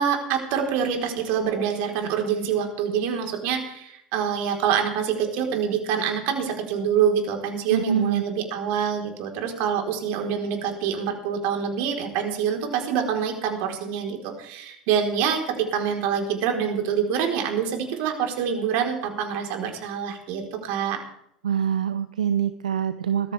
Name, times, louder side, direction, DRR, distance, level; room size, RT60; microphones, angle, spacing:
voice 1, 0.0-21.0, right 7 dB, 60° right, 3 dB, 4.3 m, -26 dB
voice 2, 7.7-8.2 21.4-23.3, right 8 dB, 90° right, 11 dB, 0.7 m, -24 dB
19.5 x 14.0 x 3.5 m, 0.71 s
hypercardioid pair, 85°, 4 cm